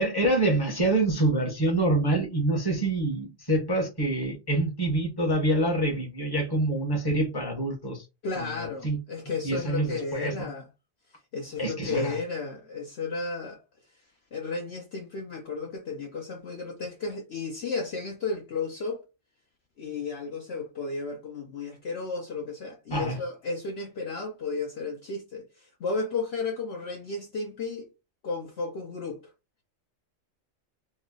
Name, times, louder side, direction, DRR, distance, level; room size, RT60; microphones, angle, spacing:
voice 1, 0.0-8.0 8.6-9.0 9.4-10.5 11.6-12.1 22.9-23.2, right 1 dB, 20° left, 1.1 m, -26 dB
voice 2, 8.2-10.7 11.3-13.6 14.3-19.0 19.8-27.9 28.2-29.2, left 3 dB, 60° left, 0.8 m, -33 dB
3.2 x 2.1 x 3.7 m
omnidirectional pair, 1.3 m